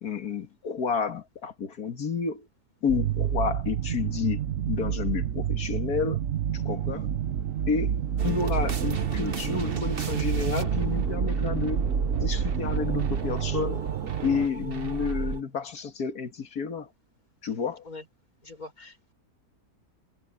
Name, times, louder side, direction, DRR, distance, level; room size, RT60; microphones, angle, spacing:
voice 1, 0.0-2.5 2.8-4.4 4.7-6.2 6.5-7.1 7.7-11.8 12.2-13.8 14.2-16.9 17.4-17.8, left 6 dB, 90° left, 2.3 m, -30 dB
sound 1, 2.9-14.5, right 9 dB, 60° right, 1.2 m, -30 dB
sound 2, 8.2-15.4, right 5 dB, 40° right, 1.2 m, -31 dB
voice 2, 18.4-19.1, left 3 dB, 70° left, 6.2 m, -44 dB
omnidirectional pair, 1.6 m